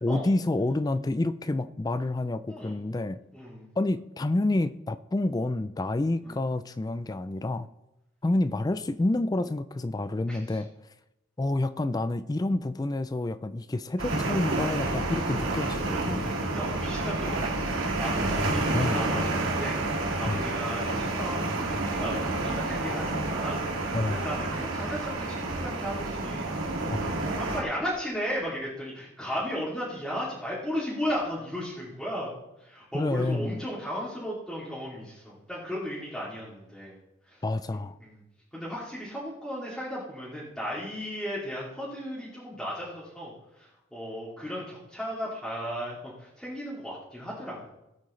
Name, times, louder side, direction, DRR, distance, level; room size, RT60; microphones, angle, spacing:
voice 1, 0.0-3.2 3.8-7.7 8.2-10.7 11.4-16.3 18.4-19.2 20.3-20.4 23.9-24.3 26.9-27.1 32.9-33.6 37.4-38.0, left 2 dB, 20° left, 13 dB, 0.3 m, -28 dB
voice 2, 2.5-2.9 3.3-3.7 6.2-6.4 10.3-10.6 16.5-26.5 27.2-32.3 32.6-37.0 37.2-37.4 37.7-38.2 38.5-47.7, equal, 5° left, -9 dB, 2.7 m, -35 dB
sound 1, 14.0-27.6, right 2 dB, 90° right, 2.2 m, -29 dB
17.5 x 8.6 x 3.2 m, 0.91 s
head